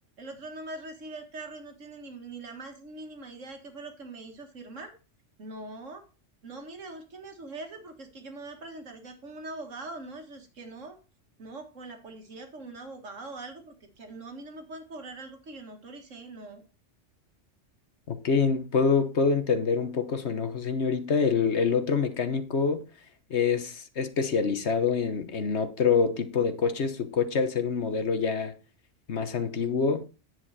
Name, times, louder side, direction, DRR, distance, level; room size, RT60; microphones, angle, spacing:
voice 1, 0.2-4.9 5.4-6.0 6.4-11.0 11.4-16.6, right 2 dB, 85° right, 2.2 m, -42 dB
voice 2, 18.1-22.8 23.3-28.5 29.1-30.1, left 5 dB, 65° left, 1.4 m, -26 dB
9.9 x 7.8 x 4.2 m
omnidirectional pair, 1.3 m